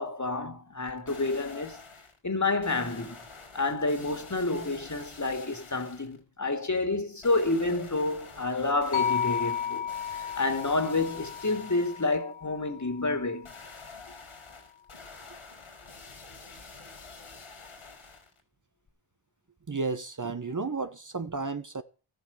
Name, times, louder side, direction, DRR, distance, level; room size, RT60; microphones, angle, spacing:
voice 1, 0.0-1.8 2.2-3.2 3.5-9.9 10.1-13.5, left 3 dB, 35° left, 2.5 m, -29 dB
sound 1, 0.9-2.2 2.6-6.2 7.2-12.2 13.4-18.4 18.9-19.0, left 4 dB, 80° left, 5.4 m, -48 dB
sound 2, 8.9-13.1, left 8 dB, 65° left, 1.7 m, -33 dB
voice 2, 19.7-21.8, right 4 dB, 40° right, 1.1 m, -32 dB
14.0 x 9.4 x 7.2 m
wide cardioid pair, 70°, 49 cm